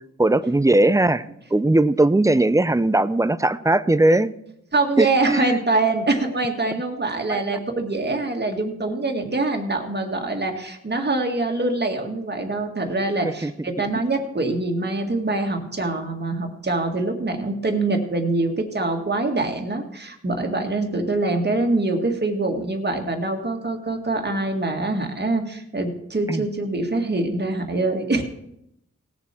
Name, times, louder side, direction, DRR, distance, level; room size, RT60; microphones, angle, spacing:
voice 1, 0.2-1.2 1.5-4.3 5.0-5.6 7.3-7.4 13.4-13.5 26.3-26.4, right 2 dB, 10° right, 15 dB, 0.5 m, -19 dB
voice 2, 4.7-28.2, right 2 dB, 35° right, 3 dB, 1.9 m, -24 dB
18.5 x 7.2 x 4.4 m, 0.77 s
wide cardioid pair, 75°, 29 cm